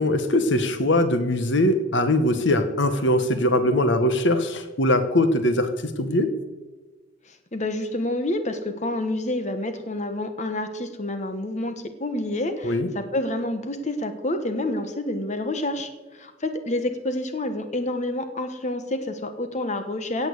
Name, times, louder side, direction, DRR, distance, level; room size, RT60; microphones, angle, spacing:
voice 1, 0.0-5.7 6.0-6.3 12.6-12.9, left 1 dB, 65° left, 10 dB, 1.2 m, -21 dB
voice 2, 7.3-20.3, left 1 dB, 35° left, 8 dB, 1.3 m, -28 dB
17.0 x 7.2 x 8.2 m, 1.2 s
head